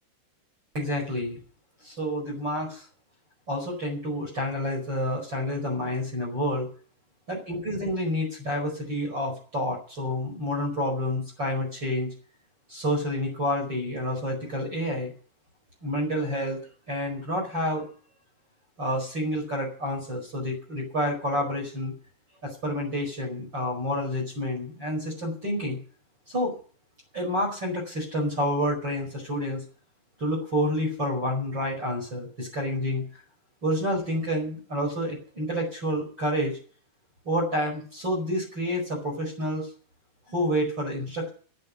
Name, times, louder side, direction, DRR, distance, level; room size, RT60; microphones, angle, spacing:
voice 1, 0.7-1.4 1.8-2.9 3.5-6.7 7.3-12.1 12.7-15.1 15.8-16.6 16.9-17.8 18.8-21.9 22.4-25.8 26.3-26.5 27.1-29.6 30.2-33.0 33.6-36.6 37.3-39.7 40.3-41.3, equal, 25° right, 3 dB, 5.6 m, -29 dB
10.5 x 10.0 x 9.6 m, 0.42 s
omnidirectional pair, 4.8 m